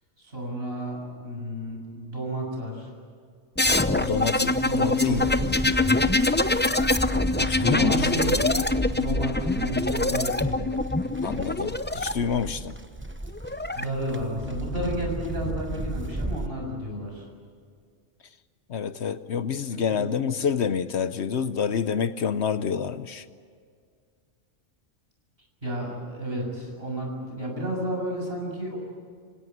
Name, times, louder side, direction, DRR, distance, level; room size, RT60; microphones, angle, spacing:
voice 1, 0.2-2.9 4.3-6.0 7.6-8.4 8.9-10.7 13.8-17.3 19.7-20.2 25.6-28.8, right 1 dB, 55° right, 0 dB, 7.1 m, -32 dB
sound 1, 3.6-12.1 13.2-13.8, left 2 dB, 15° left, 0.4 m, -24 dB
voice 2, 3.8-5.2 7.4-8.1 11.2-12.7 18.7-23.2, left 7 dB, 65° left, 13 dB, 1.0 m, -28 dB
Livestock farm animals working animals, 4.0-16.5, right 1 dB, 10° right, 0.9 m, -35 dB
26.5 x 17.0 x 9.5 m, 2.1 s
omnidirectional pair, 1.3 m